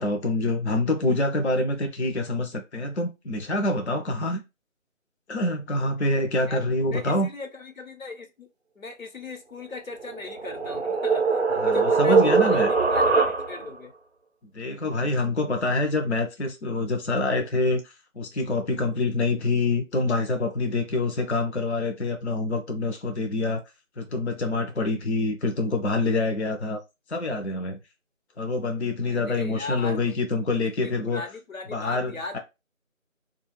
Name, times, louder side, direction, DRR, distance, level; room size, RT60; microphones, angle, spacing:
voice 1, 0.0-4.4 5.3-7.3 11.6-12.7 14.5-23.6 24.0-26.8 27.1-27.8 28.4-31.2 31.7-32.4, left 2 dB, 55° left, 0.5 m, -26 dB
voice 2, 6.5-8.5 8.8-13.9 29.0-30.2 30.6-32.4, left 3 dB, 90° left, 0.8 m, -38 dB
sound 1, 10.0-13.8, right 4 dB, 55° right, 0.4 m, -22 dB
2.3 x 2.1 x 3.1 m
figure-of-eight pair, 165°, 40 cm